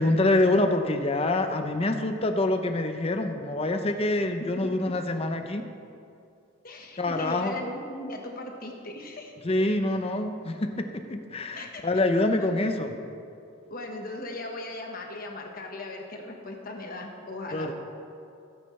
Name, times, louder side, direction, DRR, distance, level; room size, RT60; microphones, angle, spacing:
voice 1, 0.0-5.6 7.0-7.5 9.4-12.9 17.5-17.7, left 2 dB, 30° left, 6 dB, 0.6 m, -26 dB
voice 2, 4.2-4.7 6.6-9.3 11.5-12.6 13.7-17.7, left 2 dB, 45° left, 2 dB, 1.3 m, -38 dB
17.5 x 9.0 x 3.2 m, 2.5 s
head